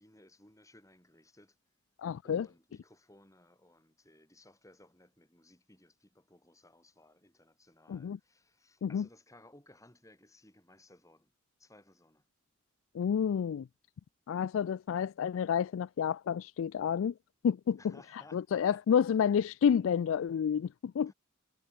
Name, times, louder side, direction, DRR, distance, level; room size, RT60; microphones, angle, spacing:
voice 1, 0.0-1.6 2.2-11.3 11.6-12.3 17.8-19.0 21.1-21.2, left 1 dB, 15° left, 7.8 m, -60 dB
voice 2, 2.0-2.5 7.9-8.2 8.8-9.0 12.9-13.7 14.3-17.1 17.4-17.8 18.3-21.1, left 7 dB, 75° left, 0.3 m, -29 dB
head